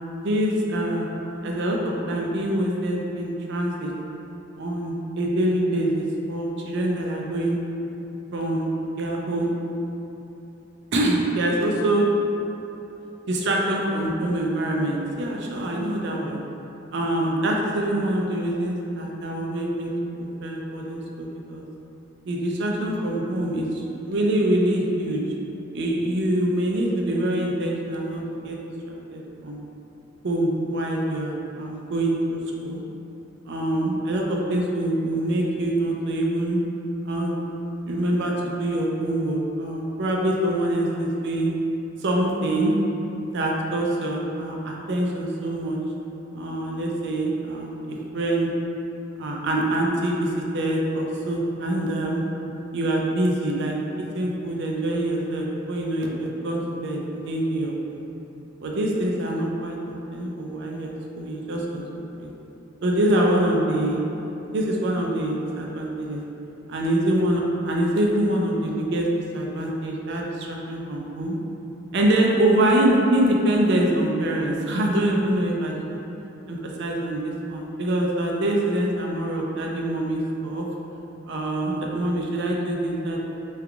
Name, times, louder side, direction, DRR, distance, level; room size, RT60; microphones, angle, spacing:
voice 1, 0.2-1.1 1.4-3.9 4.6-7.6 8.3-8.7 9.0-9.5 10.9-12.1 13.3-16.4 16.9-19.9 20.2-21.6 22.3-25.2 25.7-28.6 28.9-29.6 30.2-32.8 33.5-36.6 37.0-37.4 37.9-41.5 42.0-42.8 43.3-45.8 46.3-48.5 49.2-52.2 52.7-53.8 54.1-58.0 58.6-62.3 62.8-64.0 64.5-66.2 66.7-69.1 69.3-71.4 71.9-76.0 76.5-80.7 81.3-83.2, right 1 dB, 60° right, -1 dB, 0.4 m, -25 dB
3.4 x 3.2 x 2.4 m, 3.0 s
head